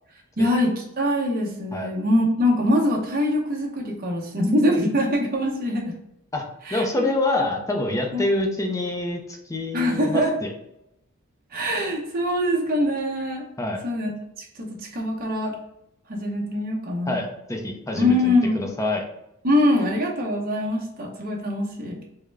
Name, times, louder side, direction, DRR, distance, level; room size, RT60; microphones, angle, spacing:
voice 1, 0.4-5.9 6.7-7.1 8.1-8.2 9.7-10.3 11.5-13.4 13.8-14.1 14.6-15.5 16.1-17.2 17.9-18.5 19.4-22.0, left 1 dB, 45° right, -2 dB, 0.8 m, -23 dB
voice 2, 6.7-9.2 9.5-10.5 13.6-13.8 17.1-19.0, left 2 dB, 15° left, 2 dB, 0.5 m, -26 dB
3.6 x 2.1 x 3.3 m, 0.83 s
head